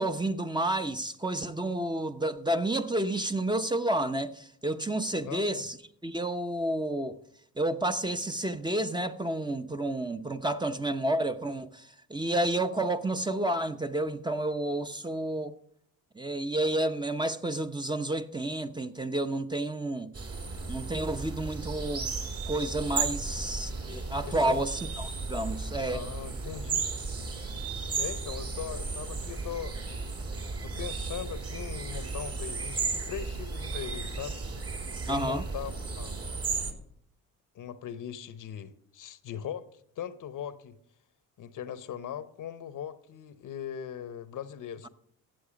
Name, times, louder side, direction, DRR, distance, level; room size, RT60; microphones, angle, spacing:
voice 1, 0.0-5.8 6.0-7.2 7.6-15.5 16.1-20.1 20.7-22.2 22.5-26.1 35.1-35.4, right 1 dB, 10° right, 0.9 m, -30 dB
voice 2, 5.2-5.7 24.3-24.6 25.9-26.8 28.0-29.8 30.6-34.4 35.0-35.7 36.0-36.2 37.5-39.7 40.0-40.8 41.4-44.9, left 9 dB, 60° left, 0.9 m, -39 dB
sound 1, 20.1-36.7, right 4 dB, 40° right, 2.6 m, -34 dB
14.0 x 8.1 x 5.2 m
supercardioid pair, 65°, 35 cm